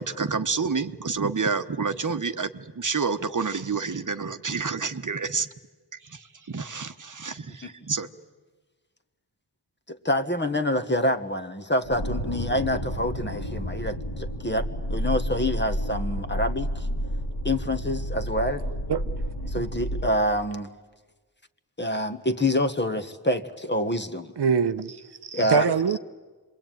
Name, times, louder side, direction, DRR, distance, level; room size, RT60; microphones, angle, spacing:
voice 1, 0.0-5.5 6.5-8.1, right 5 dB, 45° right, 1.1 m, -28 dB
voice 2, 9.9-14.6 14.9-16.9 17.4-18.6 19.5-20.7 21.8-24.3 25.3-25.7, left 1 dB, 25° left, 1.5 m, -26 dB
sound 1, 11.8-20.1, equal, 80° left, 3.5 m, -30 dB
voice 3, 18.6-19.0 19.4-19.7 24.4-26.0, right 6 dB, 70° right, 0.8 m, -25 dB
26.5 x 22.0 x 9.2 m
wide cardioid pair, 65°, 42 cm